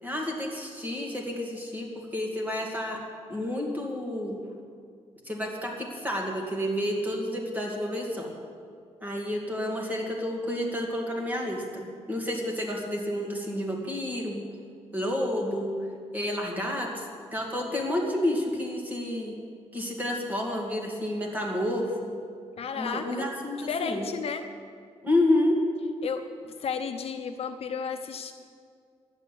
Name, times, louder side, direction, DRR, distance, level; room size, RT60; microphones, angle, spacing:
voice 1, 0.0-3.0 3.3-4.4 5.3-8.3 9.0-14.4 14.9-15.8 16.1-17.0 17.3-19.4 19.7-22.1 22.8-24.0 25.0-25.6, left 1 dB, 15° right, 0 dB, 2.5 m, -30 dB
voice 2, 22.6-23.3 23.7-24.4 26.0-28.3, left 6 dB, 55° left, 6 dB, 0.8 m, -33 dB
11.0 x 8.2 x 9.9 m, 2.2 s
cardioid pair, 135°, 12 cm